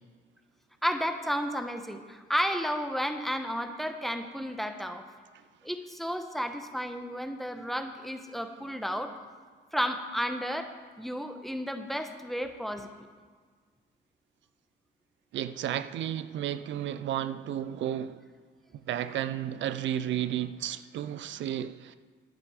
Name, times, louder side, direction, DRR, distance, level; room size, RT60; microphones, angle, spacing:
voice 1, 0.8-5.1 5.6-9.1 9.7-13.1, equal, ahead, 7 dB, 1.0 m, -32 dB
voice 2, 15.3-18.2 18.9-22.0, right 11 dB, 70° right, 13 dB, 0.5 m, -32 dB
12.0 x 9.6 x 4.8 m, 1.6 s
cardioid pair, 90°, 20 cm